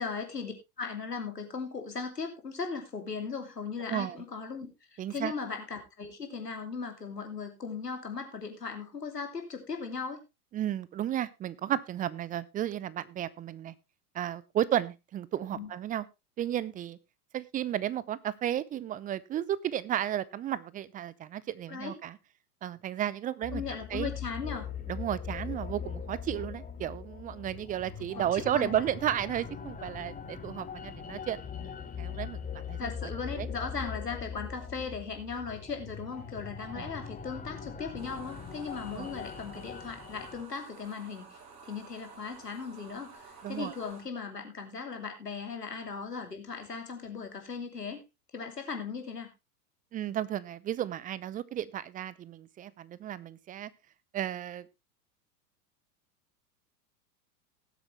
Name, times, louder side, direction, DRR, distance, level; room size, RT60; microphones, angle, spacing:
voice 1, 0.0-10.2 15.5-15.7 21.7-22.0 23.5-24.7 28.1-28.8 32.8-48.0 48.3-49.3, left 5 dB, 90° left, 5 dB, 2.9 m, -38 dB
voice 2, 5.0-5.3 10.5-13.7 14.1-16.1 16.4-17.0 17.3-22.2 22.6-23.6 23.9-24.1 24.9-32.9 33.3-33.5 36.7-36.9 38.9-39.1 43.4-43.7 49.9-53.7 54.1-54.7, right 11 dB, 20° right, 20 dB, 0.6 m, -33 dB
sound 1, 23.4-40.4, left 7 dB, 15° left, 1.9 m, -41 dB
sound 2, 38.0-44.0, right 4 dB, 35° right, 5.0 m, -51 dB
18.5 x 8.0 x 3.2 m, 0.24 s
figure-of-eight pair, 95°, 47 cm